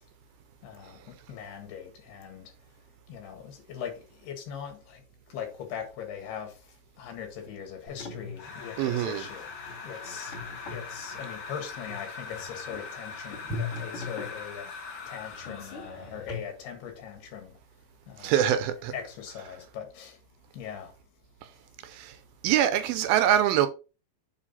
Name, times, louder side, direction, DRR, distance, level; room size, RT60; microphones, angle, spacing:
voice 1, 0.6-2.5 3.1-3.9 4.2-5.0 5.3-6.5 7.0-9.5 9.8-10.3 10.7-14.7 15.1-17.5 18.1-18.4 18.9-20.2 20.5-20.9, left 8 dB, 80° left, 3.8 m, -40 dB
sound 1, 7.9-16.4, left 3 dB, 35° left, 3.3 m, -41 dB
sound 2, 8.4-16.0, left 4 dB, 60° left, 1.2 m, -41 dB
voice 2, 8.8-9.2 18.2-18.9 21.9-22.1 22.4-23.7, right 11 dB, 80° right, 2.4 m, -24 dB
9.1 x 4.0 x 4.1 m
omnidirectional pair, 4.5 m